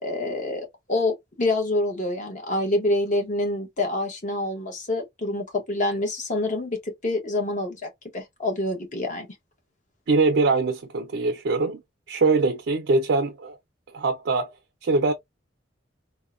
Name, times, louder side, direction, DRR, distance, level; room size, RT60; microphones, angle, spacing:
voice 1, 0.0-9.3, left 2 dB, 45° left, 1.0 m, -27 dB
voice 2, 10.1-11.8 12.1-13.6 13.9-14.5 14.8-15.1, right 3 dB, 80° right, 0.5 m, -22 dB
3.6 x 2.1 x 2.4 m
head